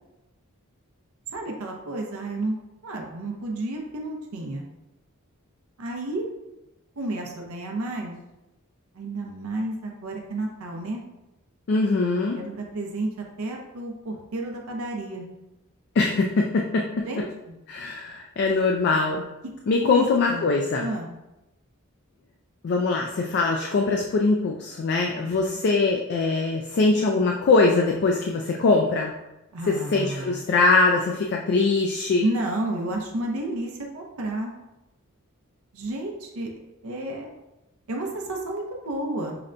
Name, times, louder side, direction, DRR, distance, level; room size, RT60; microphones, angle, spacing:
voice 1, 1.3-2.5 2.8-4.7 5.8-6.3 7.0-8.2 9.0-11.0 12.3-13.1 13.4-15.3 17.1-17.5 19.8-21.1 25.2-25.6 29.5-30.4 32.2-34.5 35.7-36.5 36.8-37.3 37.9-39.4, right 2 dB, 75° right, 1 dB, 0.6 m, -31 dB
voice 2, 11.7-12.4 16.0-17.1 17.7-19.2 19.7-20.9 22.6-29.1 29.7-32.3, left 3 dB, 50° left, 1 dB, 0.3 m, -22 dB
5.7 x 2.1 x 2.5 m, 0.95 s
head